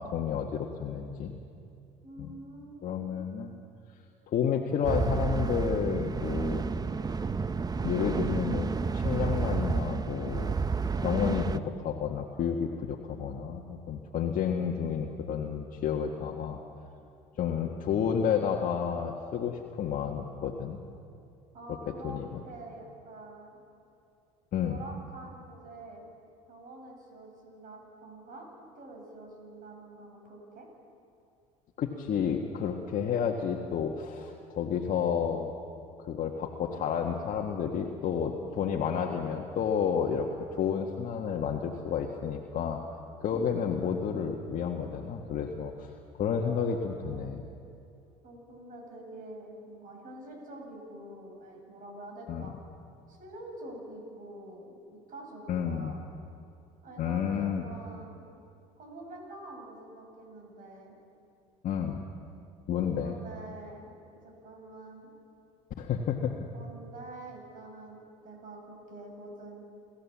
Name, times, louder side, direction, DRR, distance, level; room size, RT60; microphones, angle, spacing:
voice 1, 0.0-1.4 2.2-2.3 2.8-3.6 4.3-6.6 7.8-10.6 11.0-16.6 17.4-20.8 21.9-22.4 24.5-24.8 31.8-35.5 36.0-40.3 40.6-42.8 43.2-45.9 46.2-47.4 52.3-52.5 55.5-56.0 57.0-57.7 61.6-62.1 62.7-63.2 65.8-66.4, left 7 dB, 50° left, 0 dB, 1.6 m, -31 dB
voice 2, 2.0-3.1 21.5-23.6 24.6-26.0 26.5-30.7 43.3-43.5 46.4-47.4 48.2-52.5 53.1-56.0 56.8-58.2 58.8-61.0 63.0-63.9 64.2-65.1 66.5-69.6, right 2 dB, 50° right, 1 dB, 7.7 m, -46 dB
sound 1, 4.8-11.6, right 4 dB, 20° right, 0.7 m, -30 dB
29.5 x 14.5 x 7.4 m, 2.5 s
hypercardioid pair, 75°, 18 cm